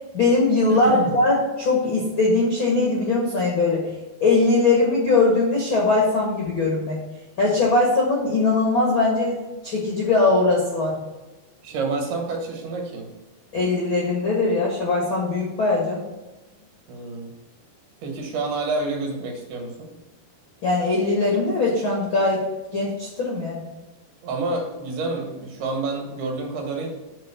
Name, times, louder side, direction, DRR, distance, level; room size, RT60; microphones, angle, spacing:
voice 1, 0.1-3.9 4.2-7.0 7.4-9.4 9.6-10.9 13.5-16.0 20.6-22.4 22.7-23.7, left 3 dB, 55° left, -2 dB, 1.4 m, -20 dB
voice 2, 0.7-1.1 11.6-13.1 16.9-17.3 18.0-19.9 24.2-26.9, right 3 dB, 75° right, 2 dB, 3.5 m, -28 dB
8.1 x 4.4 x 7.0 m, 1.1 s
omnidirectional pair, 4.7 m